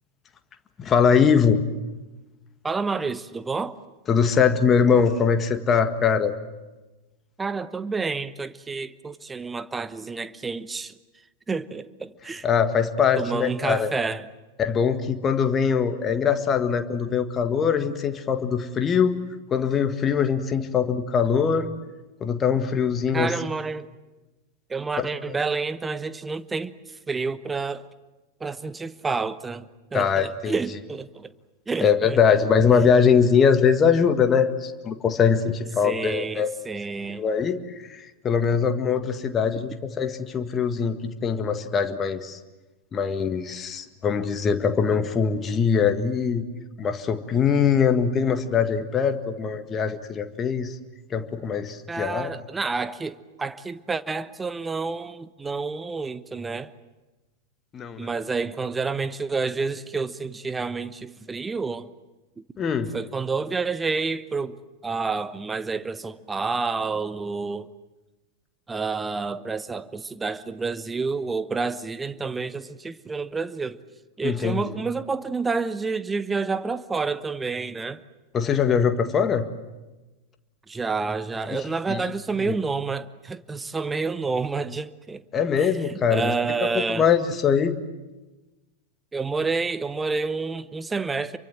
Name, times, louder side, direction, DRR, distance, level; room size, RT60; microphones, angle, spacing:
voice 1, 0.8-1.6 4.1-6.4 12.4-13.9 14.6-19.2 19.5-21.7 22.2-23.3 25.0-25.4 29.9-30.5 31.8-36.5 37.1-42.4 42.9-46.5 46.8-50.8 51.1-52.3 57.7-58.1 62.6-62.9 74.2-74.7 78.3-79.5 81.5-82.1 82.4-82.6 85.3-86.3 86.6-87.8, left 6 dB, 25° left, 1.7 m, -22 dB
voice 2, 2.6-3.8 7.4-10.9 11.5-12.5 13.2-14.3 23.1-23.9 24.7-26.7 27.1-27.8 28.4-29.6 29.9-31.3 31.7-32.2 35.8-37.2 51.9-56.7 58.0-61.9 62.9-64.6 64.8-67.7 68.7-73.8 74.2-78.0 80.7-85.2 85.5-87.1 89.1-91.4, right 4 dB, 15° right, 1.1 m, -29 dB
28.5 x 24.0 x 7.7 m
figure-of-eight pair, 90°, 0 cm